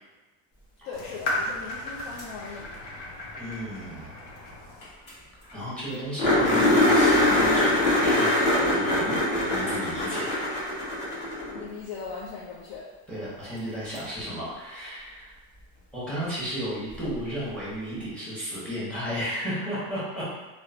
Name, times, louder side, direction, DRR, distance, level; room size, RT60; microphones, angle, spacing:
voice 1, 0.8-2.7 11.5-12.9, left 4 dB, 55° left, -5 dB, 0.5 m, -38 dB
sound 1, 0.9-4.9, left 1 dB, 85° left, 0.9 m, -35 dB
voice 2, 3.4-4.2 5.5-10.3 10.6-10.7 13.1-15.3 15.9-20.4, equal, 5° left, -9 dB, 1.0 m, -34 dB
sound 2, 4.8-4.9 5.1-5.2 5.5-5.6 6.2-11.6 14.0-14.1 16.9-17.0, left 1 dB, 30° left, 1.0 m, -22 dB
2.9 x 2.1 x 2.5 m, 1.2 s
cardioid pair, 135°, 34 cm